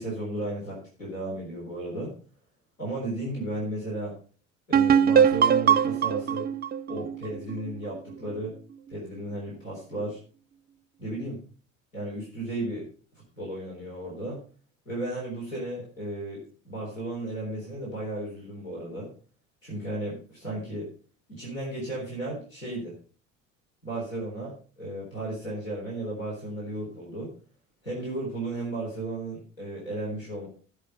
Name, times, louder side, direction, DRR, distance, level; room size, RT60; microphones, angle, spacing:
voice 1, 0.0-2.1 2.8-4.2 4.7-6.5 6.9-8.6 8.9-10.2 11.0-11.4 11.9-12.9 13.4-14.4 14.9-19.1 19.6-20.9 21.3-22.9 23.8-27.3 27.8-30.5, right 1 dB, 85° left, -3 dB, 3.8 m, -34 dB
sound 1, 4.7-8.3, right 8 dB, 25° right, 0.5 m, -22 dB
13.0 x 7.2 x 5.3 m, 0.40 s
figure-of-eight pair, 60°, 39 cm